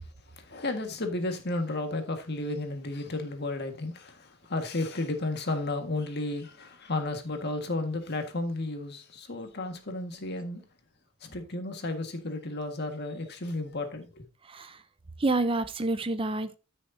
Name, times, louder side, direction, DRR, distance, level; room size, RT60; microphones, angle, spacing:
voice 1, 0.4-10.6 11.2-14.2, left 2 dB, 55° left, 1.7 m, -33 dB
voice 2, 14.5-14.8 15.2-16.6, right 2 dB, 25° right, 0.6 m, -28 dB
13.0 x 6.4 x 2.7 m
head